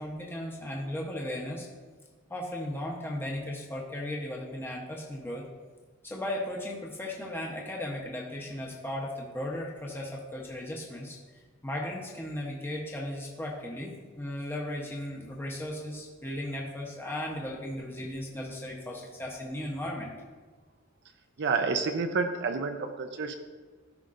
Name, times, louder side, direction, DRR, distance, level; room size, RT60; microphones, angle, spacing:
voice 1, 0.0-1.7 2.3-5.4 6.0-11.2 11.6-20.1, left 1 dB, 10° left, -2 dB, 0.8 m, -36 dB
voice 2, 21.4-23.3, right 4 dB, 60° right, 6 dB, 0.5 m, -29 dB
13.5 x 5.2 x 2.5 m, 1.4 s
head